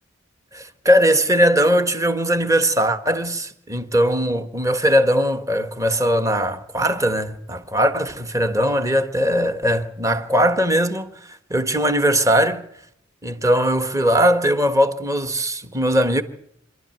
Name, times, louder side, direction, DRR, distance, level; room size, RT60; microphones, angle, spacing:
voice 1, 0.5-11.1 11.5-12.6 13.2-16.2, equal, 15° right, 1.5 m, -19 dB
26.5 x 12.5 x 9.1 m
head